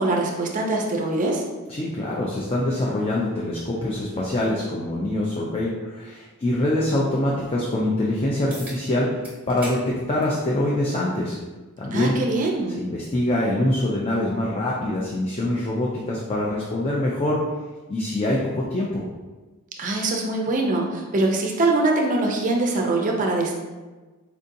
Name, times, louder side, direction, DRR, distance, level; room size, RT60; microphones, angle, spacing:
voice 1, 0.0-1.4 11.9-12.8 19.8-23.5, right 2 dB, 35° right, 1 dB, 0.4 m, -23 dB
voice 2, 1.7-9.2 9.5-11.4 11.8-12.2 12.7-17.4 17.9-19.1, left 1 dB, 25° left, -4 dB, 0.4 m, -24 dB
sound 1, 8.5-8.8 9.2-9.8 10.2-10.4 11.4-11.5 16.4-16.5, right 1 dB, 10° right, 0.8 m, -38 dB
4.4 x 2.6 x 2.6 m, 1.3 s
head